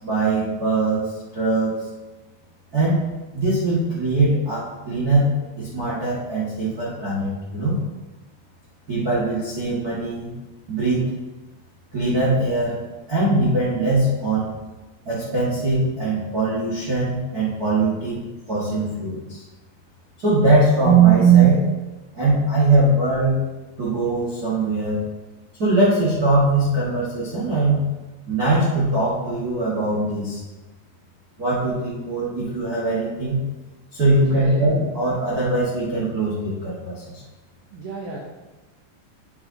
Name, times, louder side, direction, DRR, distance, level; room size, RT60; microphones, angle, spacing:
voice 1, 0.0-1.7 2.7-3.0 3.3-7.8 8.9-10.3 10.7-11.0 11.9-12.8 13.1-14.5 15.0-19.4 20.2-21.7 22.1-23.3 23.8-25.0 25.6-27.9 28.3-30.4 31.4-33.4 33.9-37.2, right 3 dB, 75° right, -8 dB, 0.8 m, -21 dB
voice 2, 34.1-34.9 37.7-38.2, right 3 dB, 90° right, -2 dB, 1.7 m, -34 dB
9.5 x 8.2 x 2.8 m, 1.2 s
omnidirectional pair, 5.0 m